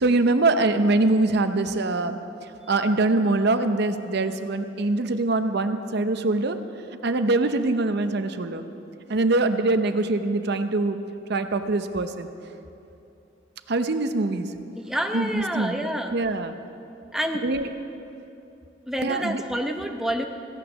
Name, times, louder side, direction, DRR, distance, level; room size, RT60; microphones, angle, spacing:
voice 1, 0.0-2.2 2.7-6.6 7.0-8.6 9.1-11.0 11.3-12.3 13.7-14.5 15.1-15.8 16.1-16.5 17.4-17.7 19.0-19.4, right 2 dB, 60° right, 9 dB, 0.7 m, -23 dB
voice 2, 14.8-16.1 17.1-17.5 18.9-20.3, equal, 5° right, 4 dB, 0.8 m, -28 dB
16.0 x 9.0 x 6.2 m, 2.8 s
head